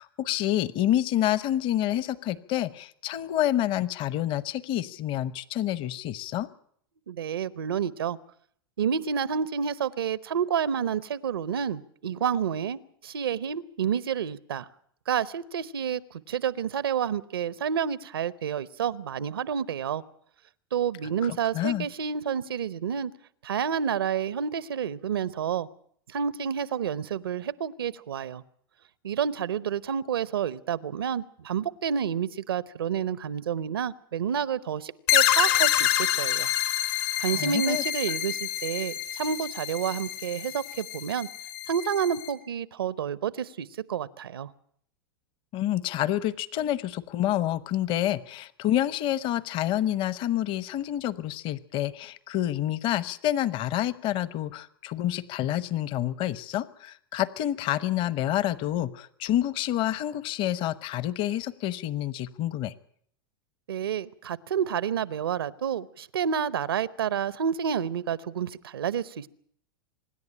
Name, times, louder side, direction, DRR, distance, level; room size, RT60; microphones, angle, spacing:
voice 1, 0.0-6.5 21.2-21.9 37.3-37.8 45.5-62.7, left 12 dB, 45° left, 17 dB, 1.0 m, -28 dB
voice 2, 7.1-8.2 8.8-14.7 15.1-20.0 20.7-23.1 23.4-25.7 26.1-28.4 29.0-36.5 37.2-41.3 41.7-44.5 63.7-69.3, right 8 dB, 85° right, 18 dB, 0.8 m, -29 dB
sound 1, 35.1-42.3, left 13 dB, 65° left, 3.5 m, -27 dB
25.5 x 11.0 x 9.9 m, 0.65 s
hypercardioid pair, 110°, 12 cm